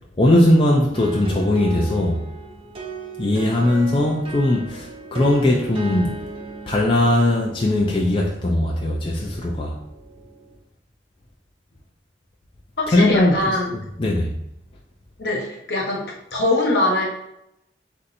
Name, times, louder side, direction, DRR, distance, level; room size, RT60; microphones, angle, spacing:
voice 1, 0.2-2.2 3.2-6.2 6.7-9.8 12.9-13.4 14.0-14.3, left 1 dB, 30° left, -1 dB, 0.4 m, -19 dB
sound 1, 0.9-10.5, right 4 dB, 30° right, 0.6 m, -37 dB
voice 2, 12.8-13.7 15.2-16.0 16.3-17.0, left 2 dB, 70° left, -2 dB, 1.1 m, -22 dB
4.4 x 2.6 x 4.1 m, 0.82 s
head